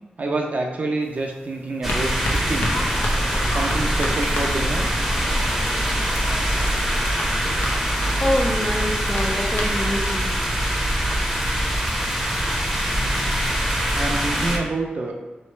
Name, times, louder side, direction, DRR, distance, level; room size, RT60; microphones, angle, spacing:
voice 1, 0.2-2.7 3.5-4.9 13.9-15.1, right 2 dB, 50° right, 1 dB, 0.6 m, -27 dB
sound 1, 1.0-10.8, left 1 dB, 60° left, 0.7 m, -35 dB
sound 2, 1.8-14.6, equal, 5° right, 0.8 m, -23 dB
sound 3, 2.6-8.3, left 1 dB, 80° left, 1.2 m, -36 dB
voice 2, 8.2-10.3, left 1 dB, 15° left, 2 dB, 0.5 m, -25 dB
3.2 x 3.1 x 4.4 m, 1.1 s
wide cardioid pair, 125°, 3 cm